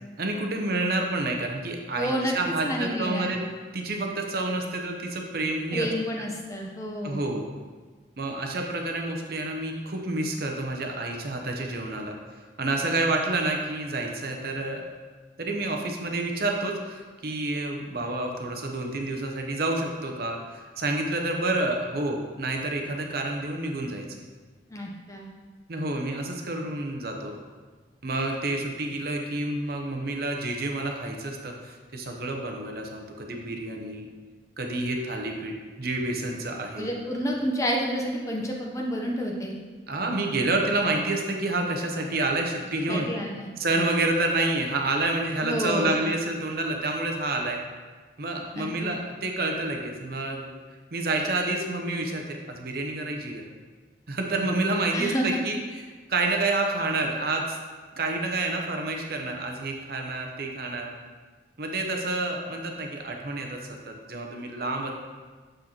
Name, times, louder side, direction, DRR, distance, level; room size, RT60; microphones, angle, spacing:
voice 1, 0.2-3.4 3.7-5.9 7.0-7.5 8.2-12.2 12.6-14.8 15.4-24.1 25.7-27.3 28.0-34.1 34.6-36.9 39.9-43.1 43.6-47.6 48.2-50.5 50.9-53.4 54.1-55.6 56.1-57.6 58.0-60.9 61.6-64.9, right 2 dB, 55° right, 2 dB, 0.7 m, -29 dB
voice 2, 2.0-2.4 2.6-3.3 5.7-7.3 24.7-25.3 36.8-39.5 42.9-43.5 45.4-46.1 48.5-48.9 54.9-55.4, equal, 15° left, -1 dB, 0.7 m, -29 dB
6.5 x 6.3 x 2.9 m, 1.4 s
head